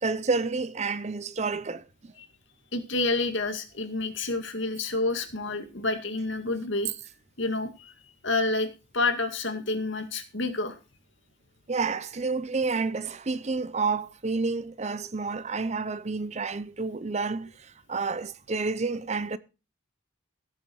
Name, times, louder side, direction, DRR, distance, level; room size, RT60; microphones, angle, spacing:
voice 1, 0.0-2.1 11.7-19.4, right 4 dB, 30° right, 0.6 m, -30 dB
voice 2, 2.7-6.9 7.4-7.9 8.2-8.7 8.9-10.8, left 3 dB, 60° left, 2.2 m, -28 dB
17.5 x 7.5 x 4.6 m
head